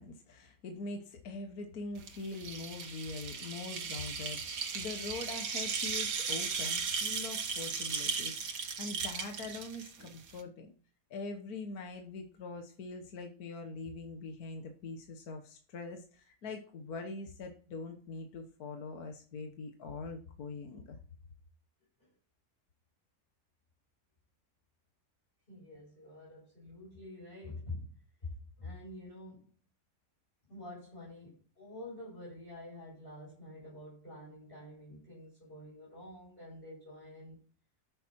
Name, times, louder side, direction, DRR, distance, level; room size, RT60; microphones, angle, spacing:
voice 1, 0.0-10.7 11.1-21.0, left 3 dB, 65° left, 5 dB, 1.6 m, -43 dB
sound 1, 2.0-10.4, right 5 dB, 75° right, 2.0 m, -36 dB
voice 2, 25.5-28.3 28.6-29.5 30.5-37.4, left 2 dB, 30° left, -6 dB, 7.7 m, -47 dB
13.0 x 7.5 x 4.5 m, 0.42 s
omnidirectional pair, 1.8 m